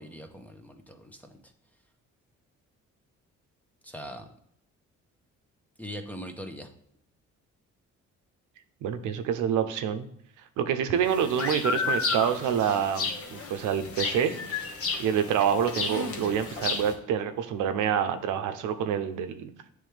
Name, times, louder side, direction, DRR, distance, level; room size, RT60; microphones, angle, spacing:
voice 1, 0.0-1.4 3.8-4.3 5.8-6.7, equal, 5° left, 5 dB, 0.8 m, -41 dB
voice 2, 8.8-10.1 10.6-14.3 15.0-19.5, right 8 dB, 90° right, 9 dB, 0.6 m, -27 dB
sound 1, 11.0-16.9, left 4 dB, 50° left, 1.2 m, -32 dB
8.7 x 3.4 x 3.3 m, 0.72 s
cardioid pair, 90°, 30 cm